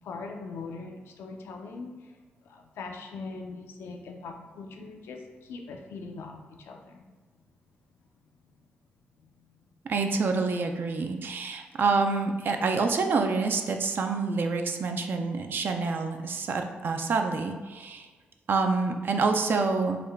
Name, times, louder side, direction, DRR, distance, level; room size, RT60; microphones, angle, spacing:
voice 1, 0.0-2.2 2.4-7.1 9.2-9.5, left 4 dB, 85° left, 3 dB, 0.4 m, -41 dB
voice 2, 9.9-18.1 18.5-20.0, right 4 dB, 60° right, 5 dB, 0.4 m, -27 dB
3.6 x 2.2 x 3.3 m, 1.3 s
cardioid pair, 70°, 4 cm